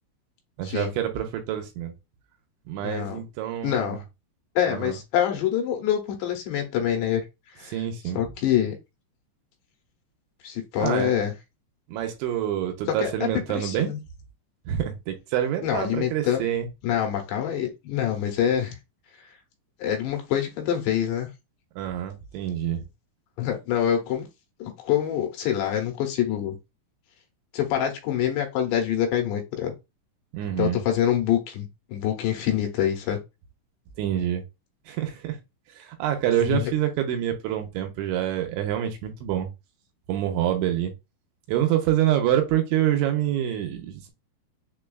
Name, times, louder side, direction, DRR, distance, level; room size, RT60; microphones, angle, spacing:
voice 1, 0.6-1.9 2.7-4.0 4.7-5.0 7.7-8.2 10.8-11.2 11.9-13.9 14.7-16.7 21.8-22.8 30.3-30.8 34.0-34.4 34.9-35.4 35.8-39.5 40.1-40.9 41.5-44.1, right 11 dB, 85° right, 3.0 m, -26 dB
voice 2, 2.8-3.2 3.6-4.0 4.6-7.3 7.6-7.8 8.1-8.8 10.4-11.3 13.0-14.0 15.6-16.4 16.8-18.8 19.8-21.3 23.4-24.3 24.6-26.6 27.5-29.7 30.6-33.2 36.4-36.7, left 10 dB, 80° left, 2.8 m, -25 dB
6.7 x 2.3 x 2.3 m
omnidirectional pair, 5.2 m